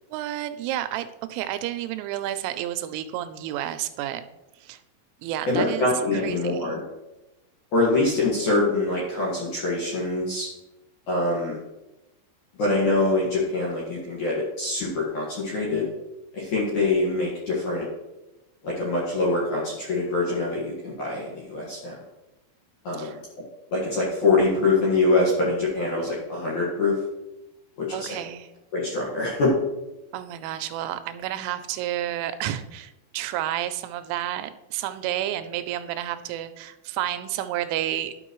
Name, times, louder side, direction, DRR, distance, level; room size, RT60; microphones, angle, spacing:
voice 1, 0.1-4.2 4.6-4.8 5.2-5.9 6.1-6.7 23.0-23.2 27.9-28.5 30.1-38.2, right 12 dB, 90° right, 11 dB, 3.1 m, -31 dB
voice 2, 5.5-6.8 7.7-10.5 11.1-11.6 12.6-15.8 16.3-17.9 18.6-22.0 22.8-23.2 23.7-27.0 27.8-28.2 28.7-29.5, left 2 dB, 60° left, -5 dB, 2.1 m, -24 dB
11.5 x 6.0 x 3.1 m, 0.99 s
omnidirectional pair, 5.6 m